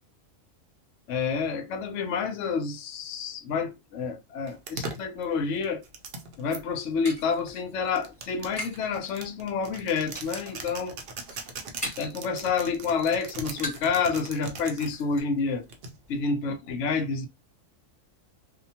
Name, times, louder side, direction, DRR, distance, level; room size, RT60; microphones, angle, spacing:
voice 1, 1.1-5.8 6.4-11.0 12.0-15.7 16.1-17.3, left 5 dB, 70° left, 0.9 m, -29 dB
sound 1, 4.5-6.6 7.4-15.0 15.7-16.2, right 3 dB, 60° right, 0.6 m, -40 dB
sound 2, 6.3-8.9 9.2-9.7 10.1-10.6 11.0-12.2 12.6-14.0 14.3-14.4 14.7-15.2, left 1 dB, 5° left, 1.1 m, -40 dB
2.7 x 2.1 x 2.7 m
omnidirectional pair, 1.4 m